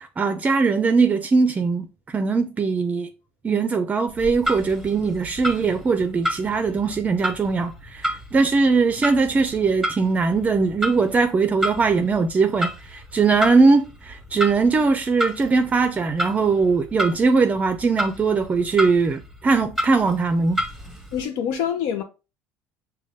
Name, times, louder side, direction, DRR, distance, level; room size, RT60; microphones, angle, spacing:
voice 1, 0.0-1.9 2.1-3.1 3.4-20.6, right 4 dB, 25° right, 0.4 m, -20 dB
Clock, 4.1-21.2, right 1 dB, ahead, 0.9 m, -32 dB
voice 2, 21.1-22.0, left 8 dB, 75° left, 0.6 m, -25 dB
5.1 x 2.2 x 3.4 m
cardioid pair, 110°, 6 cm